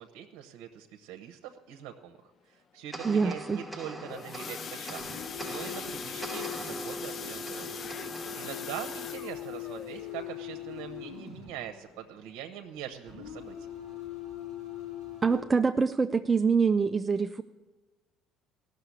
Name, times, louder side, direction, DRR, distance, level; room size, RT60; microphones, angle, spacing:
voice 1, 0.0-2.2 2.5-7.8 8.3-13.6, right 10 dB, 75° right, 6 dB, 0.9 m, -43 dB
sound 1, 2.9-9.6, right 1 dB, ahead, 1.1 m, -43 dB
voice 2, 3.0-3.6 15.2-17.4, right 5 dB, 25° right, 8 dB, 0.4 m, -25 dB
sound 2, 3.7-12.4 12.8-13.1 13.4-13.5 14.0-14.1, left 7 dB, 45° left, 0.5 m, -42 dB
sound 3, 5.0-11.5 13.1-15.4, left 8 dB, 90° left, 4.9 m, -41 dB
16.5 x 6.7 x 8.3 m, 1.3 s
supercardioid pair, 95°, 0 cm